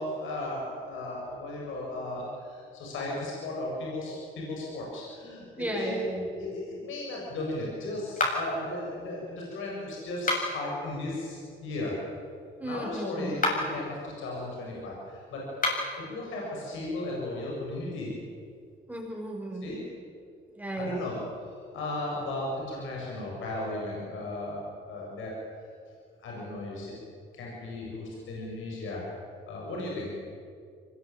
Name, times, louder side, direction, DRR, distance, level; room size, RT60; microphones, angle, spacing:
voice 1, 0.0-6.0 6.3-12.0 12.6-15.4 16.0-18.1 19.6-19.8 20.7-25.3 26.2-26.9 27.3-29.0 29.5-30.1, left 2 dB, 80° left, -3 dB, 7.6 m, -35 dB
voice 2, 5.6-6.3 12.6-13.5 18.9-19.7 20.5-21.1, right 1 dB, 10° right, -1 dB, 6.1 m, -35 dB
sound 1, 8.2-8.7 10.1-10.7 13.3-13.8 15.5-16.0, left 2 dB, 40° left, 7.2 m, -29 dB
24.5 x 21.0 x 9.2 m, 2.3 s
cardioid pair, 90°, 20 cm